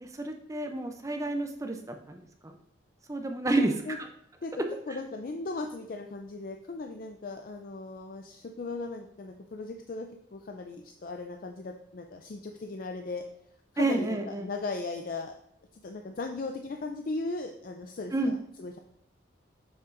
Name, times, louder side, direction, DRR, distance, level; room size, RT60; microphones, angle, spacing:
voice 1, 0.0-2.2 2.4-2.5 3.1-3.7 4.9-5.0 13.8-14.5 18.1-18.3, right 2 dB, 15° right, 5 dB, 0.5 m, -29 dB
voice 2, 3.4-4.0 4.4-4.5 4.9-13.2 13.7-15.3 15.8-18.8, left 3 dB, 45° left, 4 dB, 0.4 m, -37 dB
7.2 x 6.0 x 2.5 m, 0.76 s
head